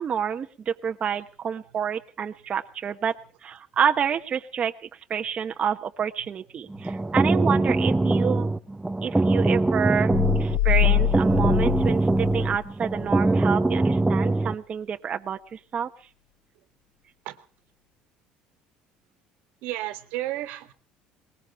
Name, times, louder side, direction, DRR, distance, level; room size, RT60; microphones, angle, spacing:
voice 1, 0.0-3.1 3.4-4.7 5.1-8.5 9.0-10.1 10.4-15.9, right 7 dB, 40° right, 5 dB, 1.0 m, -28 dB
sound 1, 6.7-14.5, right 2 dB, 10° right, 0.8 m, -23 dB
voice 2, 6.7-7.0 17.2-17.5 19.6-20.7, right 15 dB, 80° right, 9 dB, 1.7 m, -34 dB
sound 2, 10.1-12.7 13.0-13.1, left 10 dB, 80° left, 0.8 m, -24 dB
21.0 x 20.5 x 3.1 m, 0.40 s
cardioid pair, 105°, 3 cm